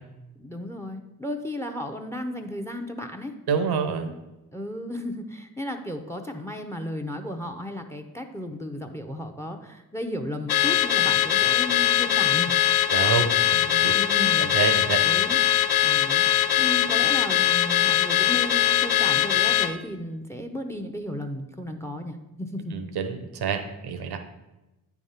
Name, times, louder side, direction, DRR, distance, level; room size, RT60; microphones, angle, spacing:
voice 1, 0.4-3.3 4.5-12.5 13.9-14.5 15.0-15.4 15.8-22.7, left 1 dB, 5° left, 7 dB, 0.7 m, -34 dB
voice 2, 3.5-4.1 12.9-13.9 14.4-15.0 22.7-24.2, right 6 dB, 80° right, 8 dB, 0.9 m, -27 dB
Car / Alarm, 10.5-19.7, left 12 dB, 75° left, 0.5 m, -21 dB
8.7 x 3.6 x 5.6 m, 1.0 s
cardioid pair, 55°, 38 cm